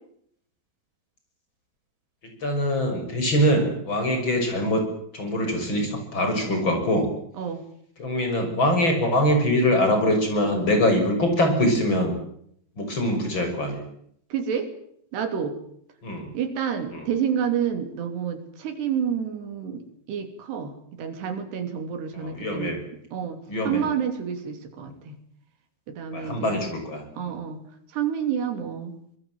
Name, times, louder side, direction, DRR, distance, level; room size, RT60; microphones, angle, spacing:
voice 1, 2.2-4.9 5.1-7.1 8.0-12.1 12.8-13.8 16.0-16.3 16.9-17.1 22.1-22.8 23.5-23.9 26.1-27.0, equal, 30° left, 5 dB, 6.7 m, -23 dB
voice 2, 14.3-14.7 15.1-15.6 16.3-22.8 23.1-25.2 25.9-26.6 27.2-27.6 27.9-29.0, right 8 dB, 85° right, 8 dB, 5.1 m, -29 dB
25.0 x 21.5 x 7.7 m, 0.69 s
omnidirectional pair, 4.6 m